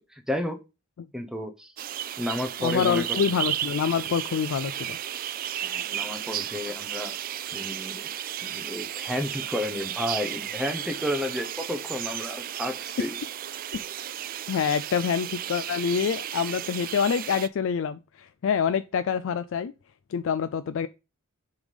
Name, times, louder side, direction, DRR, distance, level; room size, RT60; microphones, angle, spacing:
voice 1, 0.1-0.6 1.1-1.7 2.2-3.0 5.6-7.1 7.5-8.1 8.4-13.2, left 1 dB, 5° right, 0.9 m, -32 dB
sound 1, 1.8-17.5, right 11 dB, 40° right, 0.3 m, -34 dB
voice 2, 2.6-5.0 13.0-13.1 13.7-13.8 14.5-19.7 20.1-20.9, left 7 dB, 60° left, 0.3 m, -26 dB
7.0 x 3.3 x 5.3 m
head